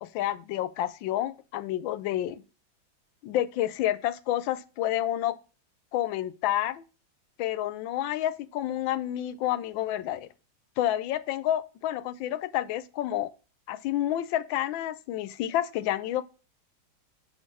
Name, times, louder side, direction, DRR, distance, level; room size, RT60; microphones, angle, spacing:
voice 1, 0.0-2.4 3.2-5.4 5.9-6.8 7.4-10.3 10.8-13.3 13.7-16.2, left 12 dB, 90° left, 1.4 m, -29 dB
6.5 x 5.7 x 4.7 m
omnidirectional pair, 2.1 m